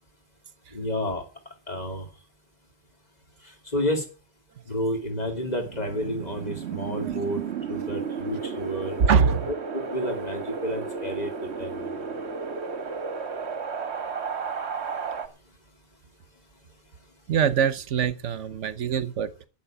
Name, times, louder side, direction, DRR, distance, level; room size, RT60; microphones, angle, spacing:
voice 1, 0.7-1.2 1.7-2.1 3.7-4.0 4.7-7.4 7.7-9.0 9.7-11.3 11.6-11.9, equal, 35° left, 3.1 m, -30 dB
Wind, 5.1-15.3, right 5 dB, 65° right, 1.6 m, -33 dB
voice 2, 9.1-9.5 17.3-19.5, right 7 dB, 80° right, 1.3 m, -24 dB
11.5 x 7.6 x 9.0 m
omnidirectional pair, 1.2 m